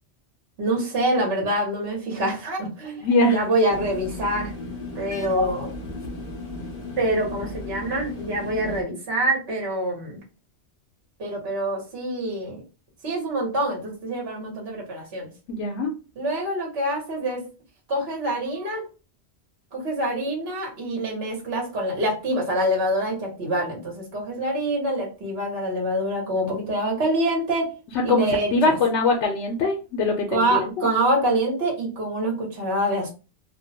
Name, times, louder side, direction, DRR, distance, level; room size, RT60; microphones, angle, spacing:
voice 1, 0.6-4.5 5.0-5.7 7.0-10.2 11.2-12.6 13.0-15.3 16.2-17.4 17.9-18.8 19.7-27.7 28.0-28.8 30.3-33.1, right 1 dB, 65° right, -1 dB, 1.2 m, -25 dB
voice 2, 3.0-3.4 15.5-15.9 28.1-30.9, left 2 dB, 85° left, 1 dB, 0.9 m, -22 dB
sound 1, 3.7-8.8, left 2 dB, 40° left, 0.7 m, -35 dB
2.5 x 2.1 x 2.6 m, 0.33 s
omnidirectional pair, 1.1 m